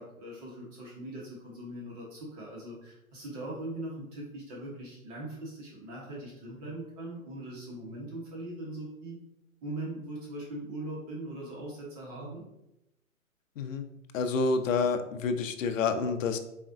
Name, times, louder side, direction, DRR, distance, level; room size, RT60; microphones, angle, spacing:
voice 1, 0.0-9.2 9.6-12.4, right 1 dB, 30° right, -4 dB, 1.0 m, -40 dB
voice 2, 13.6-13.9 14.1-16.4, left 4 dB, 65° left, 8 dB, 0.6 m, -28 dB
4.1 x 3.5 x 2.5 m, 0.86 s
hypercardioid pair, 145°, 42 cm